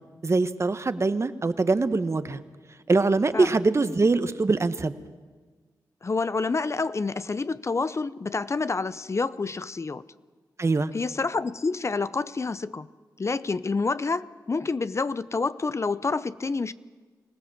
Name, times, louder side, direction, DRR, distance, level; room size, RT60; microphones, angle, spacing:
voice 1, 0.2-2.4 2.9-4.9 10.6-10.9, right 3 dB, 40° right, 1.1 m, -23 dB
voice 2, 6.0-10.0 10.9-12.9 13.2-16.7, left 4 dB, 40° left, 0.6 m, -28 dB
24.5 x 16.5 x 7.3 m
cardioid pair, 55°, 8 cm